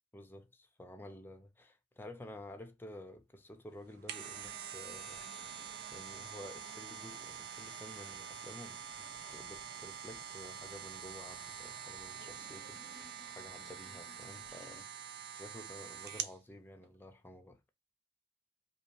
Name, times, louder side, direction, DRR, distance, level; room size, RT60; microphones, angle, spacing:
voice 1, 0.1-5.2 5.5-12.8 13.4-17.6, left 1 dB, 10° left, 0.6 m, -52 dB
sound 1, 3.8-16.4 16.8-16.9, right 8 dB, 60° right, 0.5 m, -46 dB
sound 2, 4.1-14.8, right 2 dB, 85° right, 1.6 m, -57 dB
5.2 x 2.3 x 3.2 m
head